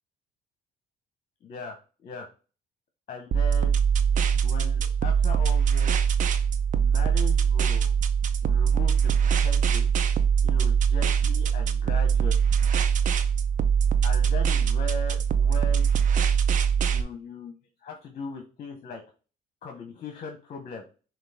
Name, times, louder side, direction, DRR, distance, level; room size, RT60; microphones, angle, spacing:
voice 1, 1.4-2.3 3.1-3.8 4.4-5.9 6.8-7.9 8.4-9.9 10.4-12.5 14.0-15.9 16.9-19.0 19.6-20.8, left 4 dB, 45° left, 3 dB, 0.9 m, -39 dB
sound 1, 3.3-17.0, right 7 dB, 50° right, 0.5 m, -22 dB
6.0 x 2.5 x 3.5 m, 0.35 s
cardioid pair, 110°, 17 cm